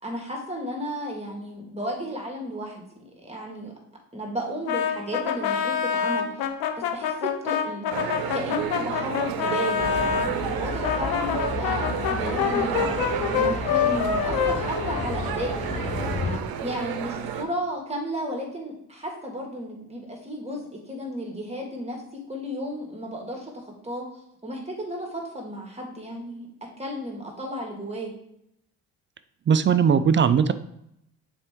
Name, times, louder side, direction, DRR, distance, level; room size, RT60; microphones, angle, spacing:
voice 1, 0.0-2.8 3.2-3.7 4.1-6.5 6.9-16.1 16.6-22.0 22.3-24.0 24.4-26.5 26.8-28.1, equal, 15° right, 0 dB, 1.9 m, -34 dB
Brass instrument, 4.7-10.3 10.8-15.6, left 7 dB, 75° left, 0.8 m, -26 dB
sound 1, 7.9-17.4, right 9 dB, 70° right, 0.7 m, -31 dB
sound 2, 9.8-16.4, left 5 dB, 20° left, 0.6 m, -33 dB
voice 2, 29.5-30.5, right 7 dB, 35° right, 12 dB, 0.4 m, -19 dB
6.9 x 4.5 x 3.6 m, 0.76 s
cardioid pair, 80°, 37 cm